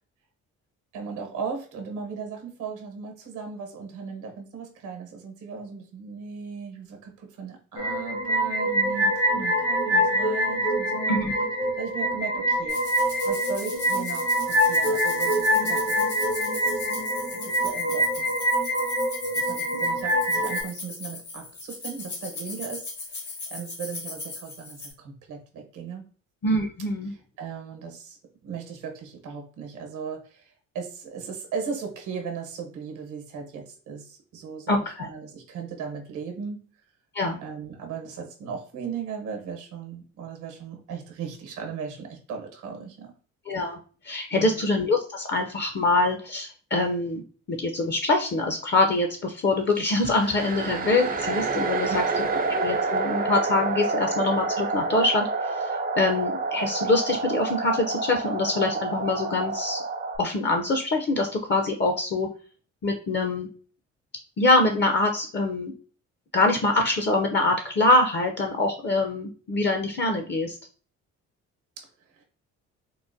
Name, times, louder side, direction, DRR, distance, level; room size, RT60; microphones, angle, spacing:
voice 1, 0.9-11.3 11.7-12.8 13.2-16.1 16.6-18.3 19.3-26.0 27.1-28.2 28.4-36.6 37.4-43.1 44.3-44.7 52.2-52.3 71.8-71.9 72.2-72.3, right 6 dB, 85° right, 4 dB, 0.9 m, -37 dB
sound 1, 7.8-20.6, equal, 55° left, 0.9 m, -25 dB
sound 2, 12.7-24.9, left 3 dB, 75° left, 1.5 m, -38 dB
voice 2, 26.4-27.1 34.7-35.1 37.1-37.4 43.5-43.8 44.0-47.2 47.5-51.9 52.5-55.7 56.0-59.8 60.2-62.3 62.8-63.5 64.4-65.7 66.3-70.6, left 2 dB, 35° left, 4 dB, 0.5 m, -24 dB
sound 3, 49.7-60.2, right 3 dB, 30° right, 0.4 m, -28 dB
3.8 x 2.1 x 2.5 m, 0.41 s
cardioid pair, 90°, 30 cm